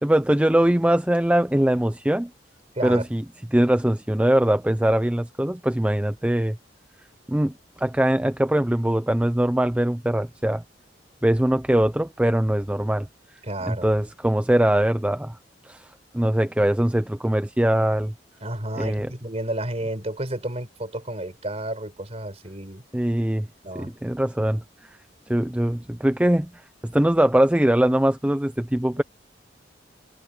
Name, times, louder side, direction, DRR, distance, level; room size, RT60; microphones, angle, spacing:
voice 1, 0.0-2.3 2.8-3.2 3.5-6.6 7.3-7.5 7.8-10.6 11.2-13.1 13.7-15.4 15.7-15.9 16.1-18.1 18.8-19.1 22.9-23.5 23.8-24.6 25.3-26.5 26.8-29.0, right 1 dB, 5° right, 0.5 m, -21 dB
voice 2, 13.4-13.9 18.4-22.8 23.6-23.9, right 1 dB, 35° right, 4.4 m, -31 dB
head